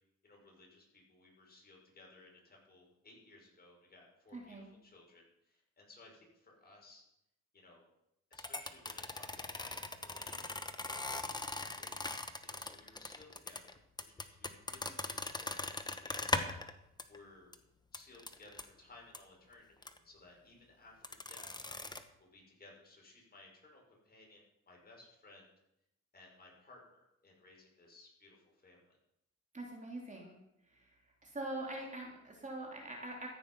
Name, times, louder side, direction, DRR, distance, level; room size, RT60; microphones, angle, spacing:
voice 1, 0.2-7.0 7.5-7.9 8.3-10.5 10.8-11.2 11.8-13.8 14.1-16.6 17.1-17.5 17.9-21.7 22.2-25.5 26.1-29.0, left 2 dB, 30° left, -1 dB, 5.7 m, -60 dB
voice 2, 4.3-4.7 29.5-30.4 30.7-30.9 31.2-33.3, right 2 dB, 25° right, -1 dB, 3.3 m, -43 dB
sound 1, 8.3-16.7 17.0-17.2 17.5-17.6 17.9-18.6 19.1-19.2 19.8-20.0 21.0-22.0, left 2 dB, 15° left, 1.2 m, -40 dB
14.5 x 9.3 x 5.5 m, 0.82 s
cardioid pair, 90°, 30 cm